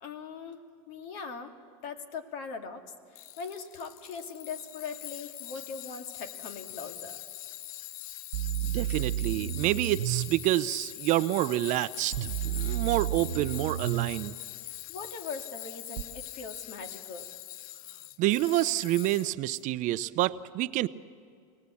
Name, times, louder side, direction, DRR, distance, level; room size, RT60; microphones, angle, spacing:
voice 1, 0.0-1.6 1.8-2.8 3.1-7.2 14.6-17.3, left 5 dB, 60° left, 7 dB, 2.2 m, -41 dB
Tools, 3.1-19.6, left 14 dB, 75° left, 0.5 m, -43 dB
sound 1, 8.3-10.3 12.1-14.1 16.0-16.1, right 13 dB, 80° right, 0.8 m, -31 dB
voice 2, 8.6-14.3 18.2-20.9, right 15 dB, 45° right, 15 dB, 0.6 m, -28 dB
24.5 x 18.5 x 8.4 m, 2.2 s
supercardioid pair, 125°, 18 cm